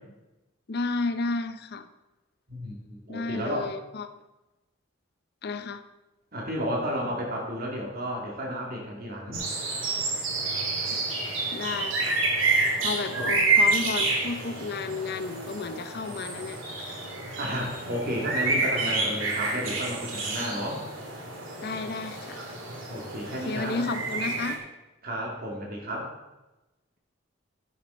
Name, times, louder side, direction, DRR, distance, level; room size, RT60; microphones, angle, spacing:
voice 1, 0.7-1.9 3.1-4.1 5.4-5.8 10.9-11.0 11.5-12.2 12.8-16.9 21.6-22.4 23.3-24.6, left 3 dB, 50° left, 10 dB, 0.6 m, -32 dB
voice 2, 2.5-3.7 6.3-9.4 13.1-13.3 17.4-20.8 22.9-23.8 25.0-26.1, equal, 50° right, -1 dB, 2.9 m, -32 dB
sound 1, 9.3-24.6, right 3 dB, 65° right, 2.7 m, -29 dB
10.5 x 10.0 x 4.2 m, 1.0 s
head